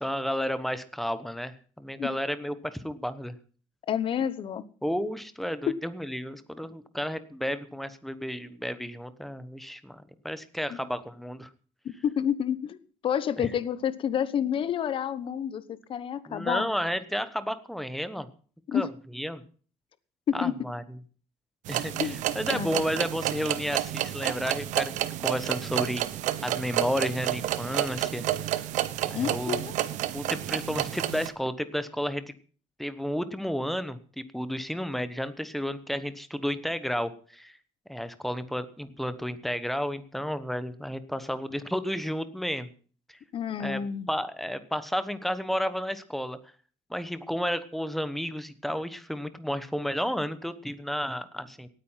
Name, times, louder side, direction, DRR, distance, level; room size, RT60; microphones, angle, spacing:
voice 1, 0.0-3.3 4.8-11.5 13.4-13.5 16.3-18.3 18.7-18.9 19.1-19.4 20.3-20.8 21.7-24.9 25.2-26.0 26.4-28.7 29.1-29.7 30.1-32.2 32.8-37.5 37.9-42.7 43.6-43.8 44.1-46.4 46.9-51.7, equal, ahead, 12 dB, 1.1 m, -32 dB
voice 2, 3.9-4.7 5.7-5.8 10.7-10.8 11.8-12.8 13.0-16.7 18.7-18.9 20.3-20.5 22.0-22.1 22.5-22.8 29.1-29.8 43.3-44.1, left 8 dB, 45° left, 16 dB, 1.0 m, -29 dB
sound 1, 21.7-31.3, right 13 dB, 80° right, 1.0 m, -30 dB
18.0 x 9.3 x 5.7 m, 0.43 s
cardioid pair, 145°, 13 cm